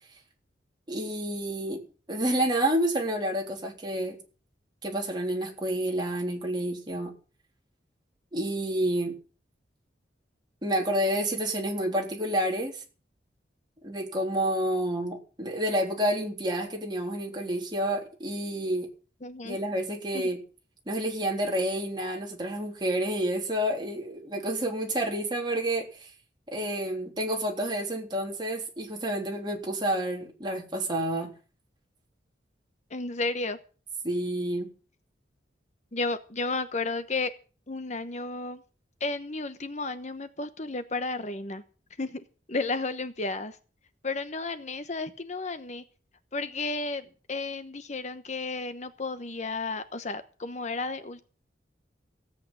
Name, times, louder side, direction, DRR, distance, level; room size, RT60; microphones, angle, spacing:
voice 1, 0.9-1.8 2.1-4.2 4.8-7.1 8.3-9.1 10.6-12.8 13.8-18.9 19.4-20.4 20.9-26.1 26.5-31.3 34.0-34.7, right 1 dB, 25° right, 1 dB, 3.5 m, -29 dB
voice 2, 19.2-19.6 20.1-20.2 32.9-33.6 35.9-37.3 37.7-38.6 39.0-41.6 42.0-43.6 44.0-45.8 46.3-51.2, left 3 dB, 40° left, 10 dB, 1.0 m, -33 dB
16.5 x 8.7 x 7.5 m, 0.38 s
head